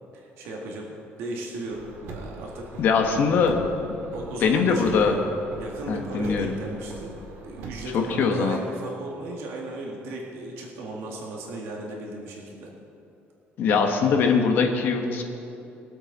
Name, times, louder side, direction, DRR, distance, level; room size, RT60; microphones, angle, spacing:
voice 1, 0.2-2.8 3.1-3.3 4.1-5.3 5.6-7.2 7.4-12.7, right 2 dB, 85° right, -1 dB, 2.1 m, -36 dB
Car, 1.7-8.0, right 3 dB, 65° right, 2.0 m, -42 dB
voice 2, 2.8-3.6 4.4-5.2 5.9-6.5 7.9-8.6 13.6-15.2, left 5 dB, 50° left, 3 dB, 1.3 m, -22 dB
22.5 x 8.0 x 4.2 m, 2.9 s
cardioid pair, 180°, 4 cm